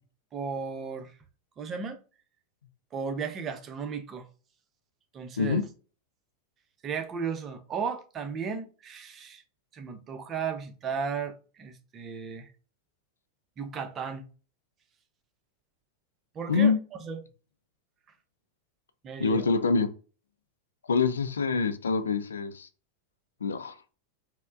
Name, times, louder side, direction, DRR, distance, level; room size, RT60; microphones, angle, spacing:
voice 1, 0.3-1.1 1.6-2.0 2.9-4.3 5.1-5.6 6.8-9.4 9.7-12.5 13.6-14.2 16.3-16.7 17.0-17.2 19.0-19.4, right 6 dB, 30° right, 0.7 m, -35 dB
voice 2, 16.5-16.8 19.2-19.9 20.9-22.7 23.4-23.7, left 5 dB, 80° left, 0.3 m, -25 dB
4.3 x 2.1 x 2.4 m
figure-of-eight pair, 90°, 0 cm